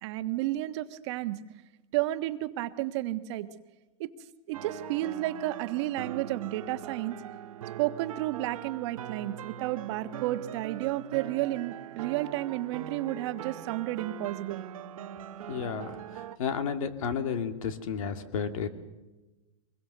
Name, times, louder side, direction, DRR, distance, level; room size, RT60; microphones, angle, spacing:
voice 1, 0.0-1.4 1.9-3.5 4.0-4.1 4.5-7.2 7.8-14.6, right 15 dB, 55° right, 10 dB, 1.4 m, -32 dB
sound 1, 4.5-16.4, right 11 dB, 75° right, 1.2 m, -42 dB
voice 2, 15.5-16.0 16.4-18.7, left 6 dB, 70° left, 8 dB, 2.4 m, -32 dB
24.0 x 21.5 x 6.7 m, 1.1 s
hypercardioid pair, 135°, 18 cm